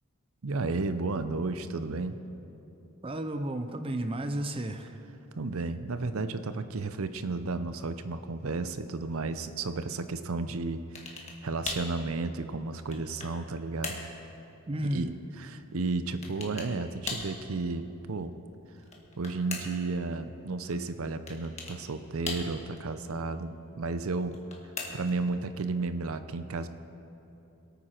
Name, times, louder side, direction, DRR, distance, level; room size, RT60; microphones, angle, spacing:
voice 1, 0.4-2.2 5.4-14.0 14.8-15.1 15.4-18.3 19.2-24.4 24.9-26.7, right 3 dB, 70° right, 10 dB, 0.6 m, -33 dB
voice 2, 3.0-5.0 10.4-10.5 14.7-15.1, right 1 dB, 25° right, 7 dB, 0.5 m, -33 dB
sound 1, 11.0-11.4 11.7-11.9 12.6-13.4 13.8-14.1 16.2-16.7 17.1-17.4 18.8-19.9 21.3-21.8 22.3-22.8 24.2-25.2, left 4 dB, 30° left, 1.6 m, -38 dB
23.0 x 9.0 x 4.4 m, 3.0 s
head